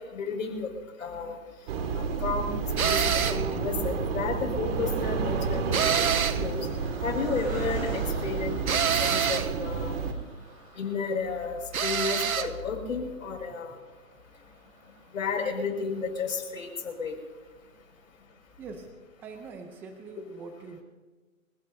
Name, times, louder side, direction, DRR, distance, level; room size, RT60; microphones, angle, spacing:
voice 1, 0.1-0.7 1.0-1.4 2.0-2.5 2.8-6.7 7.0-9.9 10.8-13.8 15.1-17.2, left 5 dB, 70° left, 2 dB, 5.9 m, -32 dB
sound 1, 1.7-10.1, right 5 dB, 45° right, 2.1 m, -30 dB
Car passing by, 2.6-17.7 18.2-18.3 18.5-18.7, right 2 dB, 25° right, 7.0 m, -46 dB
sound 2, 2.8-3.5 5.7-6.5 8.7-9.5 11.7-12.5, right 7 dB, 90° right, 1.3 m, -26 dB
voice 2, 18.6-20.8, right 4 dB, 5° right, 6 dB, 0.5 m, -44 dB
28.0 x 16.5 x 2.7 m, 1.3 s
hypercardioid pair, 150°, 41 cm